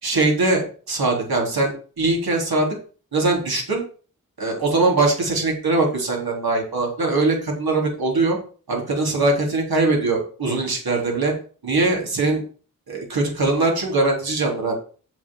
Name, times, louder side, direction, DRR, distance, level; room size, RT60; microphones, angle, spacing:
voice 1, 0.0-2.7 3.1-3.8 4.4-8.4 8.7-11.3 11.6-12.4 12.9-14.8, right 3 dB, 85° right, 0 dB, 3.9 m, -21 dB
7.9 x 5.3 x 7.6 m, 0.40 s
wide cardioid pair, 105°, 36 cm